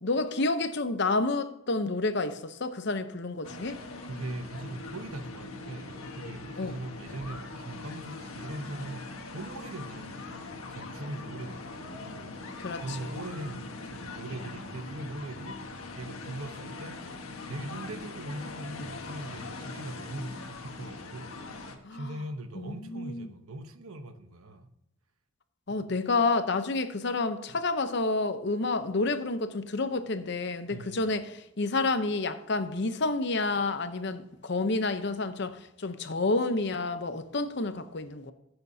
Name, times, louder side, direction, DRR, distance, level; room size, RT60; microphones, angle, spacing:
voice 1, 0.0-3.8 6.6-6.8 12.6-13.1 21.8-22.2 22.5-23.3 25.7-38.3, left 3 dB, 50° left, 0.7 m, -29 dB
sound 1, 3.4-21.8, left 3 dB, 75° left, 1.4 m, -41 dB
voice 2, 4.1-15.6 16.0-17.0 17.4-21.3 21.9-24.7 25.7-25.8 30.7-31.0, right 1 dB, 80° right, 1.0 m, -41 dB
15.0 x 7.8 x 2.7 m
head